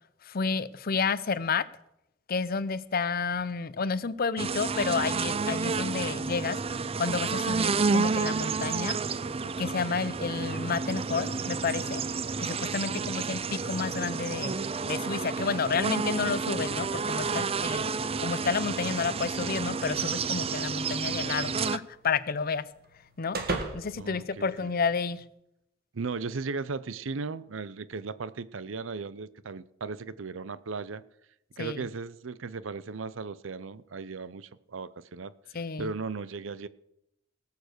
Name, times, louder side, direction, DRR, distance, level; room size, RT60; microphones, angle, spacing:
voice 1, 0.3-1.6 2.3-6.6 7.0-9.0 9.6-12.0 12.4-14.5 14.9-17.9 18.2-22.6 23.2-23.4 23.7-25.2 31.6-31.9 35.5-35.9, left 5 dB, 50° left, 17 dB, 0.6 m, -30 dB
sound 1, 4.4-21.8, right 4 dB, 30° right, 0.5 m, -30 dB
voice 2, 9.9-10.2 12.8-13.1 24.0-24.7 25.9-31.0 31.6-35.3 35.8-36.7, right 4 dB, 85° right, 17 dB, 0.6 m, -37 dB
sound 2, 20.8-25.2, right 2 dB, 55° right, 2.0 m, -39 dB
18.5 x 6.7 x 6.7 m, 0.81 s
head